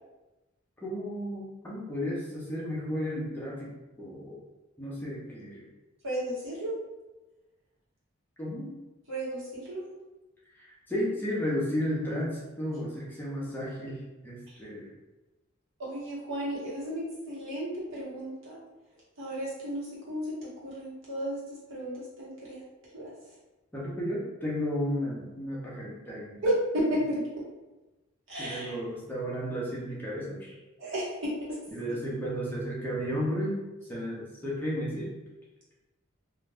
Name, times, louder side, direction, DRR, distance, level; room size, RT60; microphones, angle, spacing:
voice 1, 0.8-3.7 4.0-4.4 4.8-5.6 8.4-8.7 10.5-14.9 23.7-26.4 28.4-30.5 31.7-33.5 33.9-35.1, equal, 10° left, -6 dB, 0.6 m, -33 dB
voice 2, 6.0-6.8 9.1-9.8 15.8-18.6 19.2-20.3 20.6-21.4 21.7-22.6 22.9-23.1 26.4-27.2 28.3-28.8 30.8-31.3, right 1 dB, 65° right, -7 dB, 1.2 m, -33 dB
2.5 x 2.2 x 3.3 m, 1.1 s
head